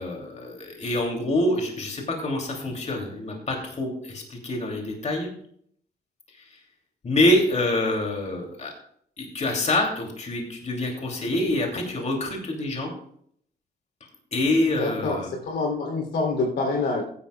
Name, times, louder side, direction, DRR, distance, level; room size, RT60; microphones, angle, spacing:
voice 1, 0.0-5.3 6.4-6.5 7.0-8.7 9.2-12.9 14.3-15.3, left 1 dB, 40° left, 1 dB, 2.9 m, -26 dB
voice 2, 14.8-17.0, left 3 dB, 85° left, 1 dB, 3.2 m, -26 dB
15.0 x 11.0 x 2.4 m, 0.64 s
cardioid pair, 100°, 17 cm